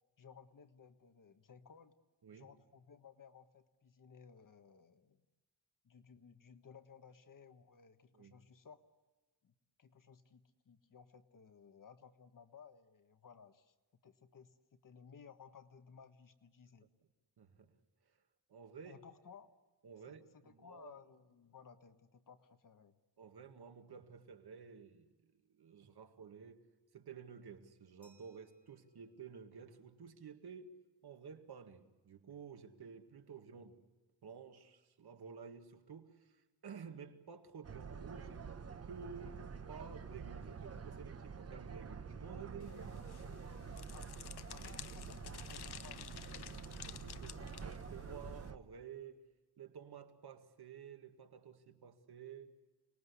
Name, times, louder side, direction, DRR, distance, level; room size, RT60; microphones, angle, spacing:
voice 1, 0.2-2.0 2.3-5.2 5.8-8.8 9.4-13.7 14.0-16.9 18.8-19.5 20.1-23.0 43.9-46.8 47.1-47.2, left 6 dB, 55° left, 1.4 m, -59 dB
voice 2, 17.4-17.8 18.5-19.0 19.8-21.0 23.2-26.6 26.9-30.7 31.0-33.8 34.2-38.5 38.8-43.1 47.0-49.2 49.6-52.5, right 6 dB, 75° right, 2.0 m, -52 dB
Glass, 28.0-30.5, right 1 dB, 5° left, 4.2 m, -75 dB
sound 1, 37.6-48.6, right 5 dB, 40° right, 1.0 m, -48 dB
sound 2, 42.6-48.5, left 10 dB, 75° left, 1.0 m, -52 dB
30.0 x 20.5 x 8.4 m
wide cardioid pair, 145°, 39 cm